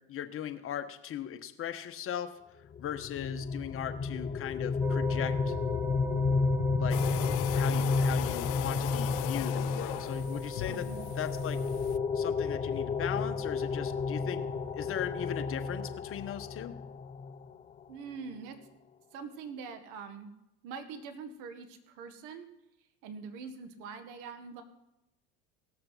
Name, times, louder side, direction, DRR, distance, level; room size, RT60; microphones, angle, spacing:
voice 1, 0.0-2.4 2.8-5.5 6.8-7.0 7.5-10.9 11.2-11.6 12.1-14.4 14.7-16.7, left 10 dB, 40° left, 8 dB, 1.3 m, -38 dB
sound 1, 2.7-17.5, left 4 dB, 20° left, 0.6 m, -32 dB
sound 2, 4.8-16.0, equal, 5° right, 0.8 m, -43 dB
sound 3, 6.9-12.0, left 22 dB, 65° left, 0.4 m, -38 dB
voice 2, 10.7-11.1 17.9-18.6 19.1-20.3 20.6-22.5 23.0-24.6, right 5 dB, 65° right, 8 dB, 1.8 m, -43 dB
18.0 x 6.7 x 5.7 m, 0.89 s
supercardioid pair, 95°, 34 cm